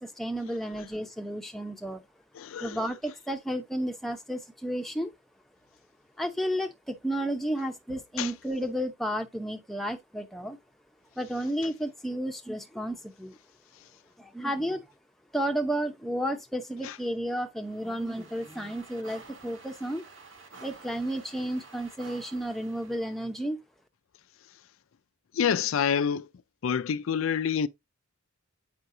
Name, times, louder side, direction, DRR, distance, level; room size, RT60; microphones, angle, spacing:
voice 1, 0.0-2.0 2.6-5.1 6.2-10.6 11.2-13.4 14.2-14.8 15.3-20.0 20.6-23.6, right 1 dB, ahead, 0.7 m, -32 dB
voice 2, 2.3-2.9 8.2-8.3 16.8-17.0 25.3-26.3 26.6-27.7, left 7 dB, 70° left, 0.4 m, -27 dB
sound 1, 17.6-23.3, right 4 dB, 65° right, 1.7 m, -51 dB
7.8 x 5.6 x 2.6 m
head